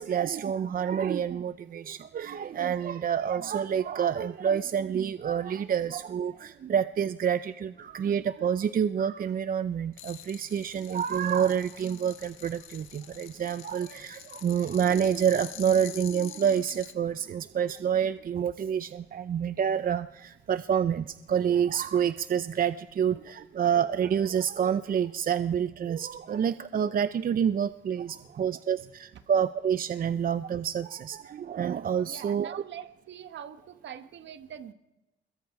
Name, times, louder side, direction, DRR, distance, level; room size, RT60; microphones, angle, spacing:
voice 1, 0.0-32.5, right 8 dB, 45° right, 13 dB, 0.6 m, -28 dB
sound 1, 9.9-16.9, left 12 dB, 90° left, 1.6 m, -46 dB
voice 2, 32.0-34.7, right 9 dB, 65° right, 10 dB, 1.4 m, -44 dB
26.0 x 22.0 x 4.8 m, 1.0 s
cardioid pair, 90°, 20 cm